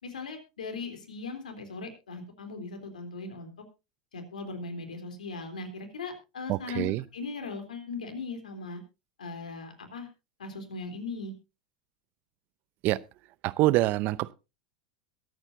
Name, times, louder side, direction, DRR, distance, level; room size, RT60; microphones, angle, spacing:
voice 1, 0.0-3.5 4.1-8.8 9.2-10.1 10.4-11.3, left 4 dB, 90° left, 3.5 m, -39 dB
voice 2, 6.5-7.0 12.8-13.0 13.4-14.3, right 17 dB, 50° right, 0.7 m, -25 dB
22.5 x 9.1 x 2.7 m
hypercardioid pair, 100°, 4 cm